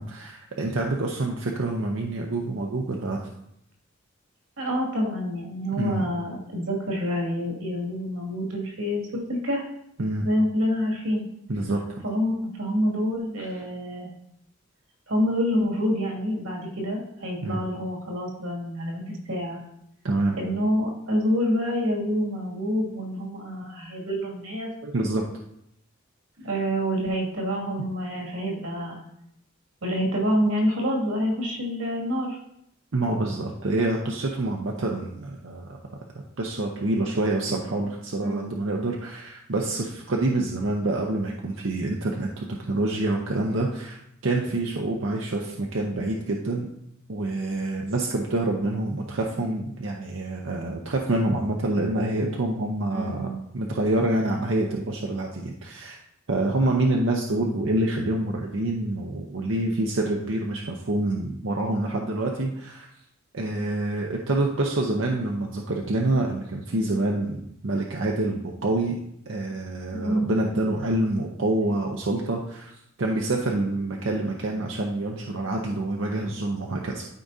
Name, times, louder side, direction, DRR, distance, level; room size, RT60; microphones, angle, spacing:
voice 1, 0.0-3.3 5.8-6.0 10.0-10.3 11.5-11.8 17.4-17.6 20.0-20.4 24.8-25.2 32.9-35.8 36.4-46.7 47.1-53.3 53.5-56.0 56.3-62.9 63.3-69.0 69.3-72.7 73.0-77.1, right 2 dB, 60° right, 0 dB, 0.7 m, -27 dB
voice 2, 4.6-9.6 10.2-11.2 12.0-14.1 15.1-19.6 20.3-24.7 26.4-29.0 29.8-32.4 38.2-38.5 52.9-53.4 69.9-70.3, equal, 90° right, -1 dB, 2.3 m, -27 dB
12.5 x 4.9 x 2.7 m, 0.77 s
head